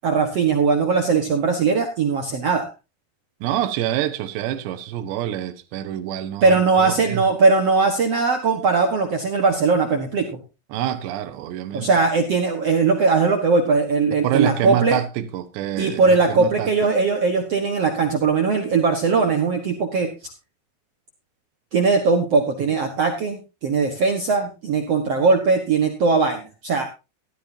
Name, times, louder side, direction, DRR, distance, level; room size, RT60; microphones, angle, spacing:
voice 1, 0.0-2.7 6.4-10.3 11.7-15.0 15.8-20.1 21.7-26.8, right 4 dB, 60° right, 1.7 m, -19 dB
voice 2, 3.4-7.2 10.7-11.9 14.2-16.7, right 11 dB, 85° right, 3.2 m, -26 dB
14.0 x 13.0 x 2.8 m
omnidirectional pair, 4.9 m